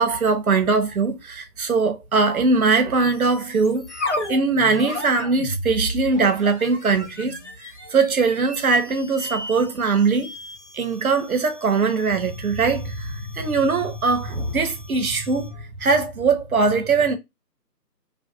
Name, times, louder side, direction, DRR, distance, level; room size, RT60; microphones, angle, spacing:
voice 1, 0.0-10.3 10.7-17.2, right 4 dB, 60° right, 0.6 m, -21 dB
sound 1, 3.1-15.6, left 1 dB, 45° left, 0.5 m, -35 dB
2.5 x 2.0 x 2.5 m
figure-of-eight pair, 160°, 49 cm